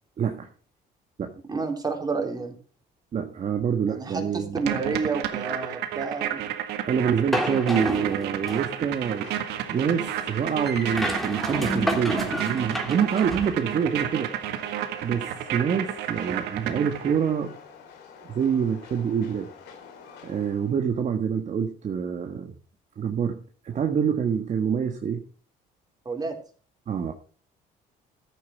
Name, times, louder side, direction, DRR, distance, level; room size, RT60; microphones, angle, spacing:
voice 1, 0.2-0.5 1.2-1.3 3.1-4.8 6.8-9.3 9.7-14.3 15.0-17.6 18.3-19.5 20.2-22.5 23.0-25.2 26.9-27.1, right 7 dB, 45° right, 4 dB, 1.6 m, -26 dB
voice 2, 1.5-2.5 3.9-6.5 26.1-26.3, right 4 dB, 25° right, 3 dB, 3.8 m, -30 dB
sound 1, 4.6-17.4, right 11 dB, 85° right, 1.8 m, -31 dB
sound 2, 7.3-8.8 10.7-13.5, equal, ahead, 3.2 m, -30 dB
Train, 8.9-20.8, left 6 dB, 85° left, 3.5 m, -47 dB
14.0 x 9.2 x 4.6 m, 0.40 s
cardioid pair, 110°, 17 cm